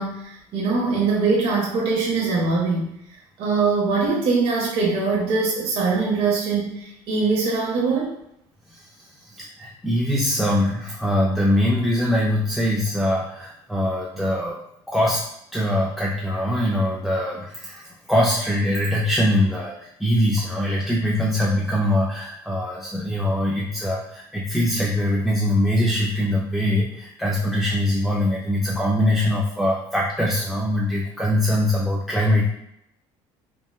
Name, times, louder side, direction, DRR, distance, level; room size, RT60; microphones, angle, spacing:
voice 1, 0.0-2.9 3.4-8.1, right 4 dB, 55° right, -4 dB, 0.7 m, -22 dB
voice 2, 9.3-14.6 14.9-15.2 15.5-32.5, left 1 dB, ahead, -3 dB, 0.3 m, -22 dB
3.6 x 2.0 x 2.3 m, 0.79 s
cardioid pair, 120°, 12 cm